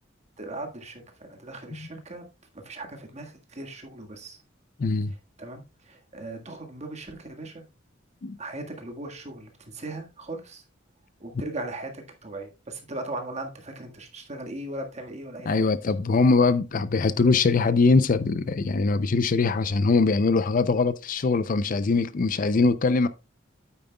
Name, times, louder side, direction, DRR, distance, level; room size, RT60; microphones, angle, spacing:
voice 1, 0.4-2.2 2.5-4.4 5.4-7.6 8.4-10.6 11.2-15.6, right 2 dB, 35° right, 1.6 m, -38 dB
voice 2, 4.8-5.1 8.2-8.4 15.5-23.1, left 4 dB, 45° left, 0.4 m, -22 dB
9.1 x 8.7 x 2.3 m
head